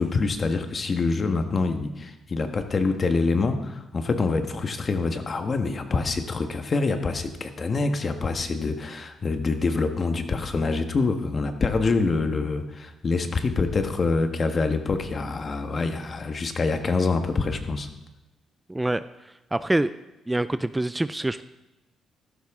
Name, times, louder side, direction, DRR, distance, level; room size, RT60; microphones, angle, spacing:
voice 1, 0.0-17.9, left 3 dB, 40° left, 7 dB, 1.4 m, -25 dB
voice 2, 18.7-19.0 19.5-19.9 20.3-21.4, right 1 dB, 10° right, 13 dB, 0.3 m, -25 dB
14.0 x 12.0 x 3.7 m, 1.0 s
cardioid pair, 90°, 0 cm